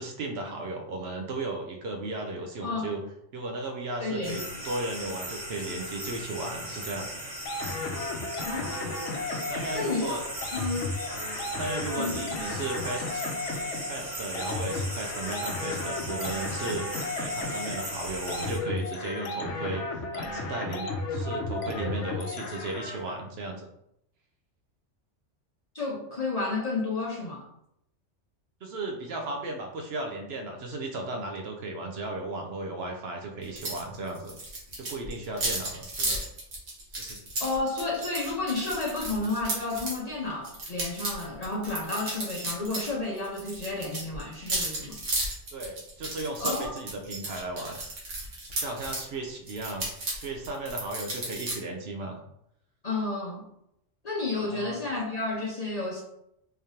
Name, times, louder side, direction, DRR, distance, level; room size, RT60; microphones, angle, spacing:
voice 1, 0.0-3.0 3.3-7.3 9.5-10.2 11.1-13.2 13.8-16.9 17.2-23.7 28.6-34.3 34.8-36.2 37.0-37.2 45.5-47.8 48.6-52.2 54.4-54.8, right 2 dB, 65° right, 2 dB, 0.8 m, -35 dB
voice 2, 4.0-4.4 8.4-9.3 9.7-10.2 10.5-10.9 12.0-12.4 25.7-27.4 37.4-45.0 46.4-46.8 52.8-53.4 54.0-56.0, left 3 dB, 40° left, -2 dB, 0.6 m, -31 dB
sound 1, 4.2-18.6, right 1 dB, 45° right, 1.1 m, -38 dB
sound 2, 7.5-23.2, left 2 dB, 75° left, 0.9 m, -34 dB
sound 3, 33.6-33.8 34.1-40.0 40.4-42.9 43.2-49.0 49.5-51.6, right 2 dB, 80° right, 1.5 m, -34 dB
3.8 x 3.3 x 2.7 m, 0.77 s
omnidirectional pair, 1.3 m